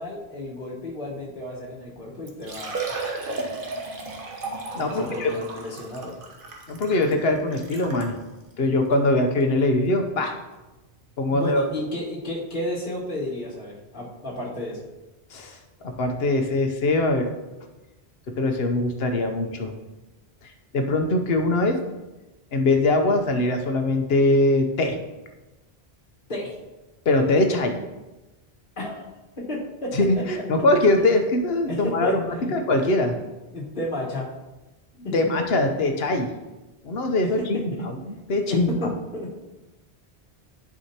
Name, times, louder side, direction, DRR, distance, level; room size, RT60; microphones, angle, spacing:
voice 1, 0.0-2.9 4.8-6.2 11.3-14.8 26.3-26.5 28.8-29.0 29.4-29.9 30.3-30.4 31.7-32.5 33.5-34.3 35.0-35.1 37.4-37.5 37.7-37.8 38.5-39.5, left 1 dB, 50° left, -5 dB, 1.6 m, -32 dB
Liquid, 2.3-8.2 8.9-9.0 9.4-9.5 11.1-11.2 11.4-11.5, right 3 dB, 55° right, 1.2 m, -34 dB
voice 2, 4.7-5.3 6.7-8.2 8.6-10.3 11.2-11.6 15.3-15.6 16.0-17.3 18.4-19.7 20.7-21.8 22.5-25.0 27.1-27.8 29.9-33.1 35.1-36.3 36.8-38.7, left 2 dB, 70° left, 5 dB, 1.1 m, -22 dB
11.0 x 4.9 x 2.9 m, 1.1 s
omnidirectional pair, 1.1 m